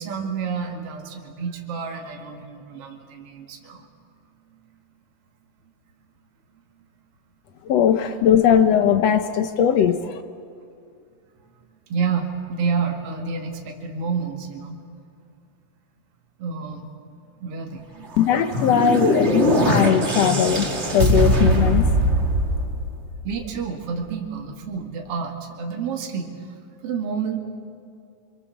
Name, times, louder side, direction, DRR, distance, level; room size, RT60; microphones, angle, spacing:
voice 1, 0.0-3.8 4.5-4.6 11.4-11.5 11.9-14.8 16.4-16.9 17.4-18.1 18.9-19.0 23.2-26.5 26.8-27.4, right 5 dB, 45° right, 1 dB, 2.8 m, -29 dB
voice 2, 7.6-10.2 18.2-21.8, left 8 dB, 70° left, 9 dB, 1.6 m, -19 dB
sound 1, 18.1-23.5, right 1 dB, 25° right, 1.9 m, -21 dB
28.0 x 23.5 x 7.2 m, 2.3 s
omnidirectional pair, 4.0 m